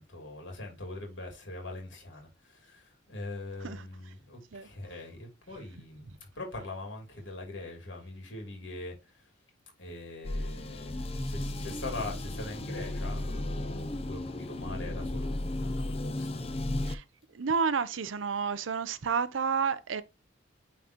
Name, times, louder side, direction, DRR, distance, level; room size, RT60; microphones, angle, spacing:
voice 1, 0.0-9.3 9.8-16.7, left 2 dB, 70° left, 3.1 m, -42 dB
sound 1, 10.2-17.0, left 1 dB, 30° left, 0.6 m, -34 dB
voice 2, 17.3-20.0, right 5 dB, 80° right, 0.6 m, -30 dB
9.3 x 3.9 x 3.0 m
head